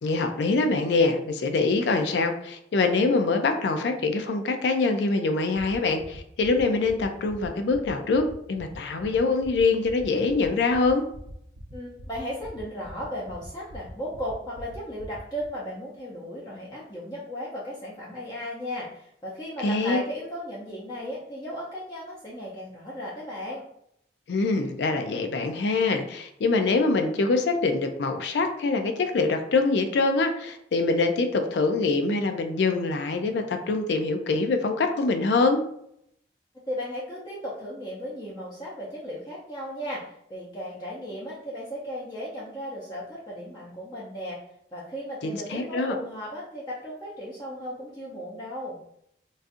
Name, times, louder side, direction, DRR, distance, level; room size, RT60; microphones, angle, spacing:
voice 1, 0.0-11.0 19.6-20.0 24.3-35.6 45.2-46.0, left 3 dB, 75° left, 6 dB, 0.4 m, -24 dB
sound 1, 5.5-15.4, right 1 dB, 90° right, 0.6 m, -46 dB
voice 2, 11.7-23.6 36.7-44.4 44.7-48.8, equal, 20° left, -6 dB, 0.6 m, -36 dB
3.9 x 2.4 x 2.5 m, 0.73 s
head